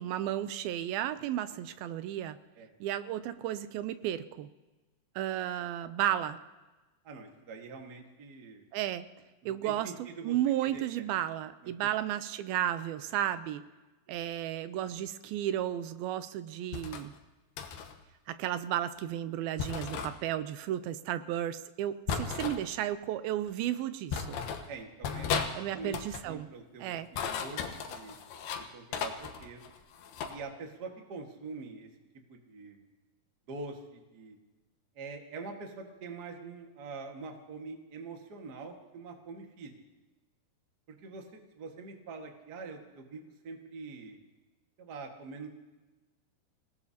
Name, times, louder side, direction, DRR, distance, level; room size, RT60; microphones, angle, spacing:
voice 1, 0.0-2.4 2.8-4.5 5.2-6.4 8.7-9.1 9.5-13.7 14.1-17.1 18.3-24.4 25.5-26.5 26.8-27.1, right 12 dB, 85° right, 12 dB, 2.4 m, -33 dB
voice 2, 7.0-8.6 9.4-10.4 10.7-11.1 11.6-11.7 14.1-14.2 24.7-25.9 26.2-27.0 27.4-27.6 27.9-28.2 28.7-29.6 30.3-31.9 32.3-32.8 33.5-34.4 34.9-39.7 40.9-44.2 44.8-45.5, right 4 dB, 40° right, 2 dB, 1.4 m, -44 dB
sound 1, 16.7-17.1 17.6-17.9 19.6-20.1 22.1-22.6 23.5-23.6 24.1-24.7 25.0-25.5 25.8-26.3 26.9-28.6 28.9-30.4, left 6 dB, 85° left, 3.1 m, -35 dB
27.5 x 18.0 x 2.8 m, 1.2 s
omnidirectional pair, 4.3 m